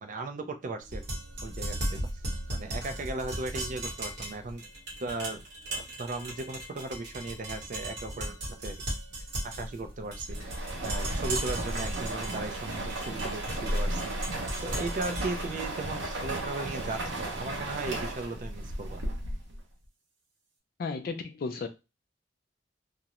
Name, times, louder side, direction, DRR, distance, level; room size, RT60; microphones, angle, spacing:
voice 1, 0.0-1.0 1.4-2.0 2.5-4.7 5.0-5.4 5.7-8.8 9.4-10.4 10.8-14.1 14.6-19.0, right 3 dB, 45° right, 0.4 m, -37 dB
sound 1, 0.8-16.9, right 1 dB, 60° right, 1.1 m, -37 dB
sound 2, 10.3-19.6, right 1 dB, 90° right, 0.7 m, -34 dB
voice 2, 20.8-21.7, left 4 dB, 55° left, 0.3 m, -34 dB
2.4 x 2.0 x 2.9 m
head